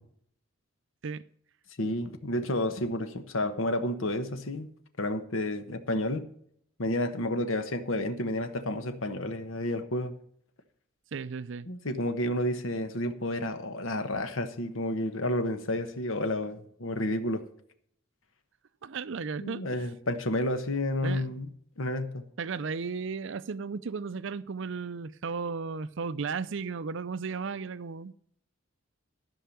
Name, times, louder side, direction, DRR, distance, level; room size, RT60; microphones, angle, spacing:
voice 1, 1.8-4.7 5.0-6.2 6.8-10.2 11.7-17.4 19.4-21.5 21.8-22.3, left 1 dB, 75° left, 1.2 m, -30 dB
voice 2, 11.1-11.7 18.8-19.9 21.0-21.3 22.4-28.1, right 5 dB, 65° right, 0.5 m, -35 dB
13.5 x 5.7 x 7.1 m
head